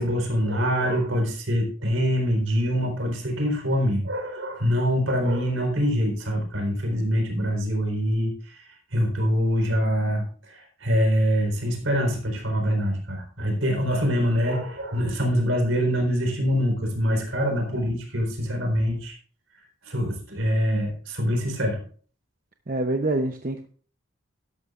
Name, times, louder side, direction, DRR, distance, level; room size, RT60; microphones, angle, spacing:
voice 1, 0.0-8.6 8.9-19.1 19.8-21.8, equal, 70° right, 2 dB, 4.0 m, -24 dB
voice 2, 22.7-23.7, right 2 dB, 40° right, 5 dB, 0.7 m, -26 dB
12.5 x 12.0 x 2.5 m, 0.42 s
head